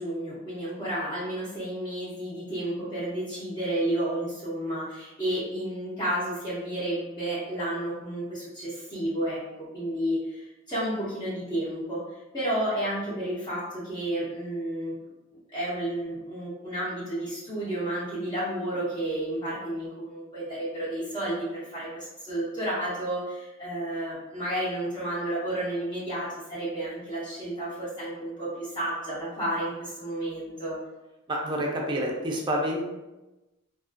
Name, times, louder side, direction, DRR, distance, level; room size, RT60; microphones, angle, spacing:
voice 1, 0.0-14.9 15.5-30.8, right 1 dB, 25° left, -9 dB, 0.6 m, -31 dB
voice 2, 31.3-32.8, equal, 25° right, -1 dB, 0.4 m, -28 dB
2.3 x 2.3 x 2.5 m, 1.0 s
head